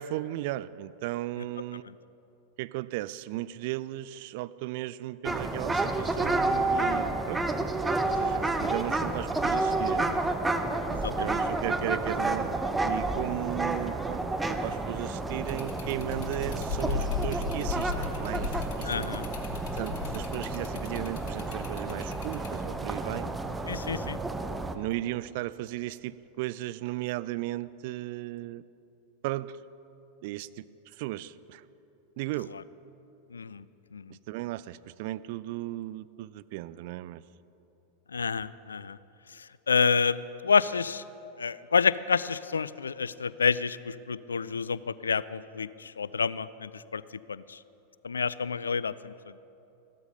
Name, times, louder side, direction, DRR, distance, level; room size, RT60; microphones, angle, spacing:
voice 1, 0.0-1.8 2.6-7.7 8.0-10.2 11.2-19.1 19.7-23.3 24.7-28.6 29.2-29.6 30.2-30.7 31.0-31.6 32.2-32.5 34.3-37.2, right 16 dB, 50° right, 17 dB, 0.3 m, -36 dB
sound 1, 5.2-24.7, right 2 dB, 10° right, 0.7 m, -30 dB
voice 2, 10.9-11.4 18.8-19.2 23.7-24.2 33.3-33.6 33.9-34.1 38.1-39.0 39.3-40.2 40.4-41.0 41.4-47.0 47.3-47.6 48.0-49.1, left 5 dB, 70° left, 18 dB, 0.3 m, -29 dB
sound 2, 15.4-22.5, left 5 dB, 50° left, 1.5 m, -37 dB
15.0 x 12.5 x 5.3 m, 3.0 s
figure-of-eight pair, 90°, 0 cm